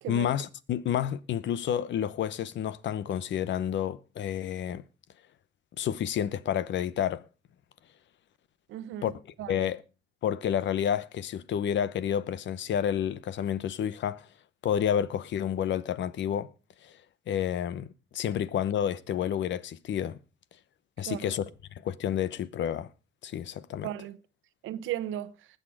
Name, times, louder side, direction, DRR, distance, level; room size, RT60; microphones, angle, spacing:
voice 1, 0.1-4.8 5.8-7.2 9.0-9.1 9.5-9.8 10.2-14.3 14.6-16.5 16.8-17.0 17.3-17.9 18.1-20.2 21.0-21.5 21.7-22.9 23.2-23.9, left 9 dB, 70° left, 0.9 m, -30 dB
voice 2, 8.7-9.1 9.4-9.7 21.1-21.3 23.8-24.2 24.6-25.3, right 12 dB, 90° right, 0.9 m, -35 dB
19.5 x 6.7 x 4.9 m
cardioid pair, 90°, 20 cm